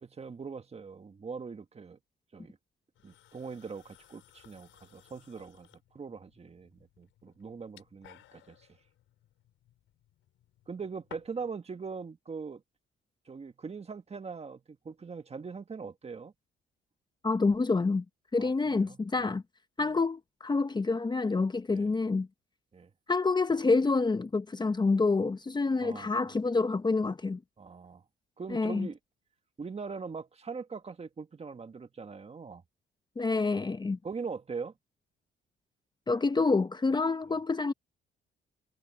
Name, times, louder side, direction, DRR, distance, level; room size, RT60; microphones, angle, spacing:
voice 1, 0.0-2.0 2.3-2.6 3.0-5.7 5.9-8.7 10.7-12.6 13.3-16.3 18.4-19.3 19.8-19.9 21.7-21.9 22.7-22.9 25.8-26.4 27.6-28.0 28.4-29.0 29.6-32.6 34.0-34.7 37.3-37.4, right 5 dB, 30° right, 1.6 m, -42 dB
sound 1, 3.0-11.6, left 13 dB, 85° left, 5.4 m, -58 dB
voice 2, 17.2-18.0 18.3-19.4 19.8-22.3 23.1-27.4 28.5-28.9 33.2-34.0 36.1-37.7, left 3 dB, 20° left, 0.8 m, -27 dB
cardioid pair, 90°, 20 cm